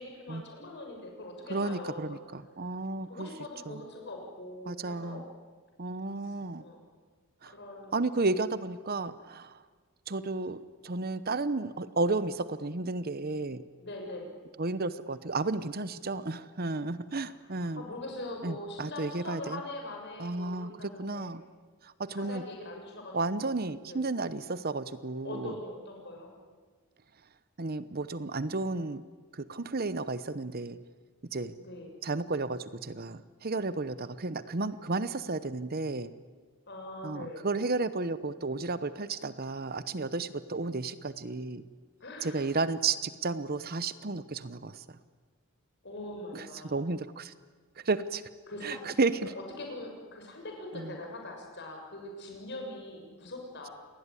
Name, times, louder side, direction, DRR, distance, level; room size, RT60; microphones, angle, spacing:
voice 1, 0.0-2.2 2.6-2.8 3.1-5.2 6.2-6.8 7.5-8.3 13.8-14.3 17.3-21.3 22.1-24.0 25.2-26.3 31.6-31.9 36.7-37.5 42.0-42.6 45.8-46.8 48.5-48.9 49.2-53.7, left 1 dB, 50° left, 2 dB, 6.9 m, -42 dB
voice 2, 1.5-3.3 3.7-3.8 4.7-5.2 5.8-6.6 7.4-7.5 7.9-9.6 10.1-13.6 14.6-17.8 18.4-19.6 20.2-21.4 21.8-22.4 23.1-25.5 27.6-29.0 29.3-30.8 31.3-31.5 32.0-36.1 37.0-41.6 42.2-45.0 46.3-47.3 47.8-48.2 48.6-49.3 50.7-50.9, right 3 dB, 45° right, 14 dB, 0.9 m, -33 dB
28.0 x 20.5 x 9.9 m, 1.4 s
head